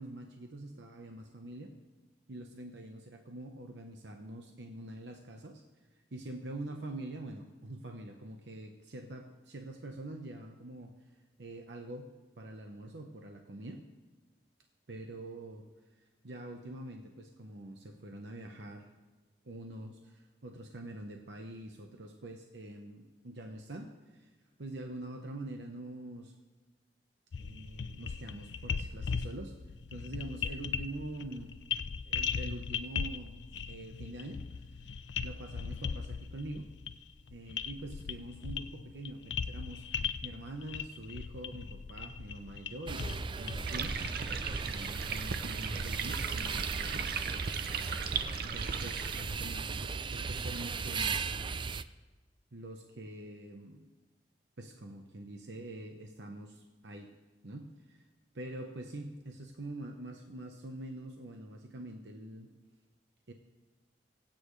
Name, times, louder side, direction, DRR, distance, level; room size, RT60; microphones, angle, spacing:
voice 1, 0.0-1.7 2.3-5.6 6.1-12.1 12.4-13.8 14.9-15.7 16.0-18.9 19.4-24.3 24.6-26.3 27.4-29.5 29.9-31.6 32.0-33.4 33.7-36.7 37.3-47.1 48.0-51.3 52.5-53.9 54.6-57.1 57.4-58.0 58.3-62.5 63.3-63.4, right 1 dB, 80° right, 3 dB, 1.0 m, -45 dB
sound 1, 27.3-44.1, left 6 dB, 85° left, 0.5 m, -38 dB
sound 2, 42.9-51.8, right 5 dB, 30° right, 0.4 m, -37 dB
sound 3, 43.7-49.6, right 6 dB, 60° right, 0.7 m, -38 dB
26.0 x 8.9 x 3.2 m, 1.3 s
head